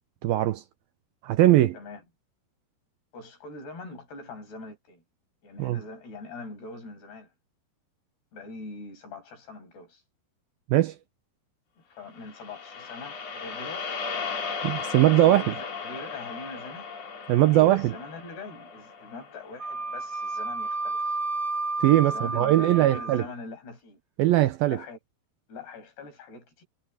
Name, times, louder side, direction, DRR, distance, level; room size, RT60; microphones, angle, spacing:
voice 1, 0.2-0.6 1.2-1.8 5.6-5.8 10.7-11.0 14.6-15.5 17.3-17.9 21.8-23.2 24.2-24.8, right 15 dB, 75° right, 2.3 m, -20 dB
voice 2, 3.1-5.0 5.4-7.3 8.3-10.0 11.9-14.0 15.2-16.9 17.2-21.2 22.0-24.0 24.7-25.0 25.5-26.7, left 3 dB, 70° left, 8.6 m, -43 dB
sound 1, 12.2-20.5, left 5 dB, 40° left, 3.5 m, -36 dB
Wind instrument woodwind instrument, 19.6-23.2, right 3 dB, 25° right, 1.5 m, -31 dB
omnidirectional pair, 4.9 m